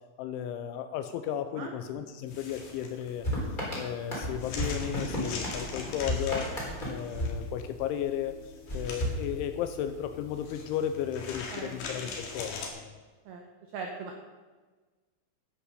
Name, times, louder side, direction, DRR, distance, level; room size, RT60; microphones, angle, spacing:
voice 1, 0.2-3.3 3.8-6.5 6.9-13.0, left 10 dB, 80° left, 9 dB, 2.8 m, -34 dB
sound 1, 2.3-12.7, left 4 dB, 65° left, 3.7 m, -42 dB
sound 2, 3.2-8.1 8.7-9.9, equal, 10° left, 3.3 m, -34 dB
voice 2, 13.7-14.2, right 5 dB, 80° right, 2 dB, 2.2 m, -39 dB
11.5 x 9.6 x 6.7 m, 1.3 s
omnidirectional pair, 5.8 m